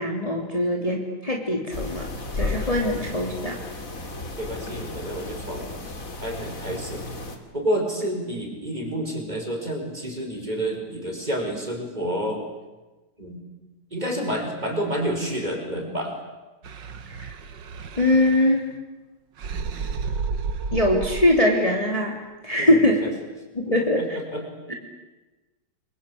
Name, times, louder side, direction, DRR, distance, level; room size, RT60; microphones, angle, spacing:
voice 1, 0.0-2.1 2.3-3.6 17.2-17.3 18.0-18.6 20.7-22.2 22.4-23.0 23.5-24.2, left 1 dB, 15° left, 0 dB, 3.3 m, -22 dB
sound 1, 1.7-7.4, left 2 dB, 45° left, 3.2 m, -33 dB
voice 2, 4.4-7.1 7.5-12.4 13.2-13.4 13.9-16.2 22.6-23.1 23.6-24.7, right 1 dB, 20° right, 2 dB, 5.6 m, -29 dB
sound 2, 16.6-18.8 19.4-21.4, right 5 dB, 70° right, 2.0 m, -32 dB
29.0 x 23.5 x 8.7 m, 1.2 s
omnidirectional pair, 2.1 m